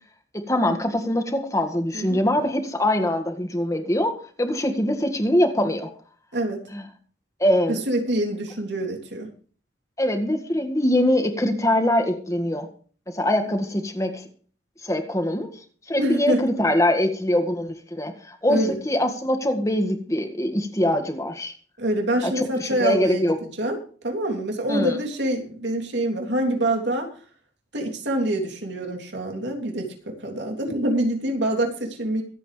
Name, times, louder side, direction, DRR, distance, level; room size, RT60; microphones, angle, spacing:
voice 1, 0.3-5.9 6.7-6.8 7.4-7.8 10.0-12.7 13.1-14.2 14.8-15.5 15.9-21.5 22.2-23.4 24.7-25.0, left 1 dB, 15° left, 6 dB, 1.9 m, -23 dB
voice 2, 6.3-6.7 7.7-9.3 16.0-16.4 18.5-18.7 21.8-23.8 24.0-27.1 27.7-32.2, right 1 dB, 70° right, 2 dB, 3.2 m, -26 dB
24.5 x 8.4 x 3.3 m, 0.43 s
head